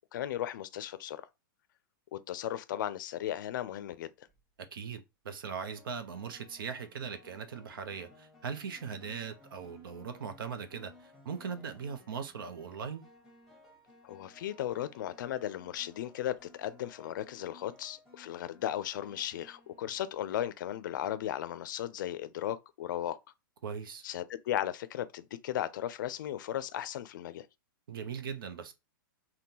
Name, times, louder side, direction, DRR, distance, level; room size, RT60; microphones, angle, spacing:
voice 1, 0.1-1.2 2.1-4.3 14.0-23.2 24.0-27.5, left 12 dB, 65° left, 0.4 m, -36 dB
sound 1, 4.1-4.4 5.7-20.5, left 2 dB, ahead, 1.1 m, -59 dB
voice 2, 4.6-13.0 23.6-24.0 27.9-28.7, right 6 dB, 75° right, 0.7 m, -40 dB
3.6 x 2.2 x 2.8 m
hypercardioid pair, 130°, 12 cm